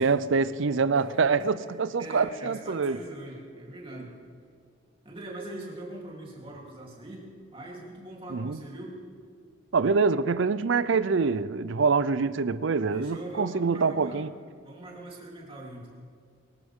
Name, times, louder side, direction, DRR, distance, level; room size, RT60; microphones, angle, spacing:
voice 1, 0.0-3.0 8.3-8.6 9.7-14.3, right 4 dB, 60° right, 0.5 m, -25 dB
voice 2, 2.0-4.2 5.0-9.0 12.9-14.2 14.6-15.9, right 1 dB, 25° right, 3.4 m, -42 dB
24.0 x 14.0 x 3.7 m
head